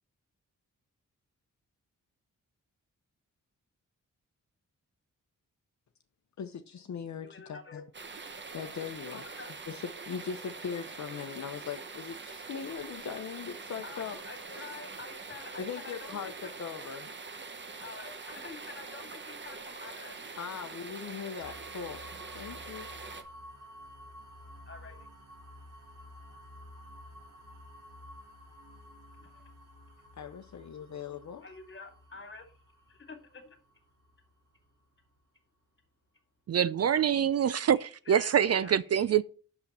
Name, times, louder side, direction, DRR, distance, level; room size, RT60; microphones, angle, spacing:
voice 1, 6.4-7.8 8.5-9.2 9.7-14.2 14.6-14.7 15.6-16.3 16.6-17.1 20.3-22.1 22.3-22.9 30.2-31.4, left 7 dB, 60° left, 0.8 m, -40 dB
voice 2, 7.2-7.8 9.1-9.5 13.8-16.5 17.8-20.2 24.7-25.1 29.2-29.4 31.1-32.5 32.9-33.6 37.4-39.2, left 4 dB, 35° left, 2.3 m, -48 dB
sound 1, 7.9-23.2, right 4 dB, 35° right, 1.0 m, -44 dB
sound 2, 21.4-35.2, left 1 dB, 75° right, 4.6 m, -52 dB
voice 3, 36.5-39.2, right 9 dB, 50° right, 0.4 m, -25 dB
8.3 x 6.8 x 4.2 m
wide cardioid pair, 135°, 32 cm